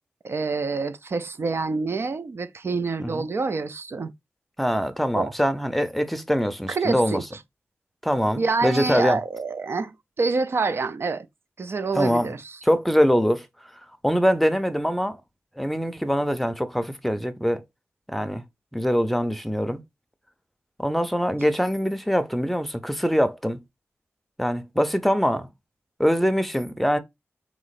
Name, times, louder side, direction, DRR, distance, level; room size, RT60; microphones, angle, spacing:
voice 1, 0.2-4.1 5.2-5.3 6.7-7.2 8.4-11.3 11.6-12.6, right 4 dB, 55° right, 0.5 m, -27 dB
voice 2, 4.6-7.2 8.0-9.2 11.9-12.3 12.6-13.5 14.0-15.2 15.6-17.6 18.1-18.4 18.7-19.8 20.8-23.6 24.4-25.5 26.0-27.0, equal, 5° left, 0.6 m, -23 dB
3.7 x 3.1 x 4.0 m
wide cardioid pair, 85°, 5 cm